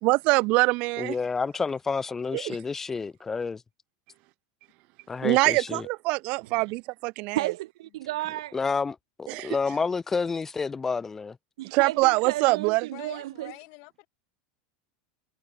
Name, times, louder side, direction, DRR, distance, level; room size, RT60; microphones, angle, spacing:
voice 1, 0.0-1.1 2.3-2.6 5.2-7.5 9.3-9.6 11.7-12.9, right 25 dB, 45° right, 2.3 m, -24 dB
voice 2, 1.0-3.6 5.1-5.9 8.5-11.4, left 4 dB, 10° left, 1.1 m, -29 dB
voice 3, 7.3-8.6 11.6-13.5, right 16 dB, 80° right, 2.3 m, -33 dB
voice 4, 12.9-14.1, left 35 dB, 50° left, 5.6 m, -46 dB
supercardioid pair, 155°, 3 cm